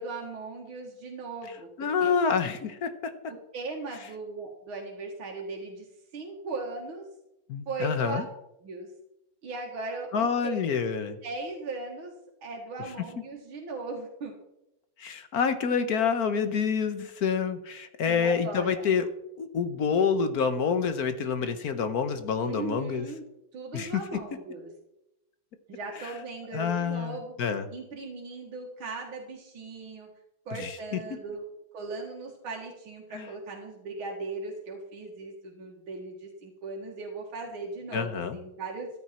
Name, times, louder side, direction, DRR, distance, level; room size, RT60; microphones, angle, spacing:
voice 1, 0.0-2.1 3.5-5.9 6.1-7.1 7.7-8.2 8.6-8.9 9.4-10.5 11.2-12.1 12.4-14.3 18.0-18.9 22.4-23.3 23.5-24.7 25.7-27.3 27.7-30.1 30.5-31.4 31.7-38.9, right 3 dB, 85° right, 0 dB, 2.5 m, -38 dB
voice 2, 1.8-3.3 7.5-8.2 10.1-11.2 15.0-19.1 19.4-23.1 23.7-24.0 26.0-26.1 26.5-27.7 30.5-31.0 33.1-33.3 37.9-38.4, left 6 dB, 55° left, 10 dB, 1.3 m, -27 dB
14.0 x 12.5 x 4.4 m, 0.88 s
omnidirectional pair, 2.2 m